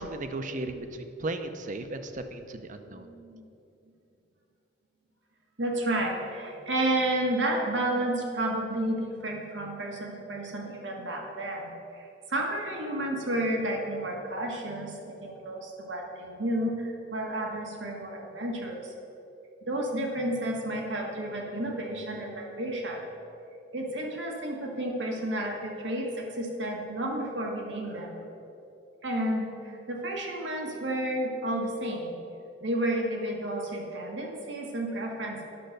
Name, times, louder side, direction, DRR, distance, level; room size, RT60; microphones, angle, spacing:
voice 1, 0.0-3.1, right 2 dB, 45° right, 8 dB, 0.7 m, -36 dB
voice 2, 2.9-3.4 5.6-18.9 19.7-23.1 23.7-28.2 29.0-32.1 32.6-35.5, right 1 dB, 85° right, 0 dB, 1.6 m, -31 dB
10.5 x 6.5 x 6.5 m, 2.7 s
head